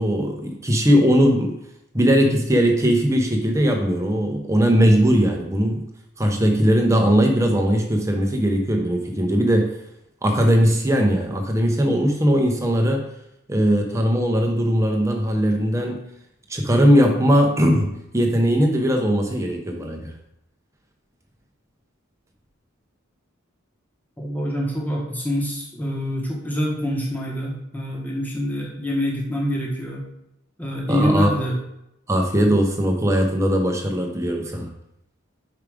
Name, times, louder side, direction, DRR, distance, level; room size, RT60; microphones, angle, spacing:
voice 1, 0.0-1.6 1.9-5.8 6.2-9.7 10.2-13.1 13.5-16.0 16.5-20.1 30.9-31.3 32.1-34.7, equal, 15° right, 3 dB, 0.7 m, -19 dB
voice 2, 24.2-30.0 30.6-31.6, equal, 10° left, -2 dB, 1.1 m, -26 dB
4.9 x 4.8 x 4.9 m, 0.82 s
head